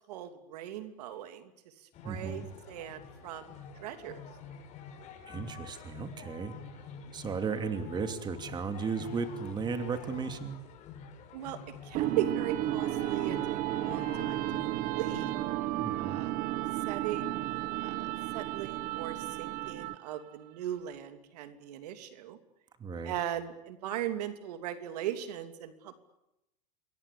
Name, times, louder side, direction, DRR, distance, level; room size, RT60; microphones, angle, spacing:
voice 1, 0.1-1.5 2.0-3.5 3.8-4.2 7.0-7.2 11.3-15.3 16.0-16.3 16.9-17.3 17.8-18.1 18.3-22.4 23.0-25.9, right 11 dB, 75° right, 9 dB, 2.9 m, -38 dB
sound 1, 1.9-15.5, left 6 dB, 35° left, 6.3 m, -48 dB
voice 2, 2.0-2.5 5.3-6.5 7.1-10.6 15.7-16.2 22.8-23.1, right 5 dB, 20° right, 8 dB, 2.7 m, -35 dB
sound 2, 11.9-20.1, right 15 dB, 40° right, 1.3 m, -33 dB
28.0 x 22.5 x 8.6 m, 0.87 s
supercardioid pair, 140°, 21 cm